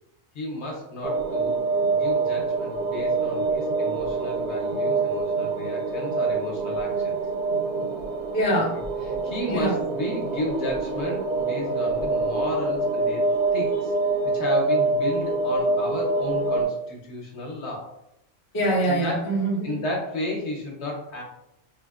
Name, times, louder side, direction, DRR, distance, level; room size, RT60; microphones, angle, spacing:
voice 1, 0.3-1.6 1.9-7.1 9.2-13.3 13.5-13.9 14.3-17.9 18.9-19.3 19.6-21.2, left 1 dB, 65° left, -1 dB, 1.0 m, -33 dB
sound 1, 1.0-16.6, right 3 dB, 65° right, 0.9 m, -25 dB
voice 2, 8.3-8.9 9.5-9.8 18.5-19.8, right 1 dB, 30° left, -2 dB, 0.4 m, -24 dB
3.9 x 2.1 x 2.3 m, 0.82 s
omnidirectional pair, 1.3 m